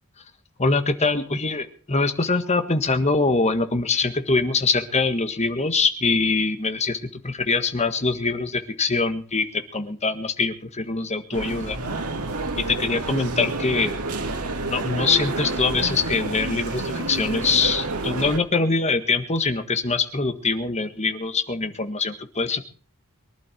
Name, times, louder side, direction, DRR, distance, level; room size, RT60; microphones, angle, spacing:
voice 1, 0.6-11.8 12.6-14.0 14.7-22.6, left 4 dB, 30° left, 9 dB, 1.6 m, -23 dB
sound 1, 11.3-18.4, right 2 dB, 85° right, 2.4 m, -29 dB
23.5 x 11.5 x 4.5 m, 0.42 s
head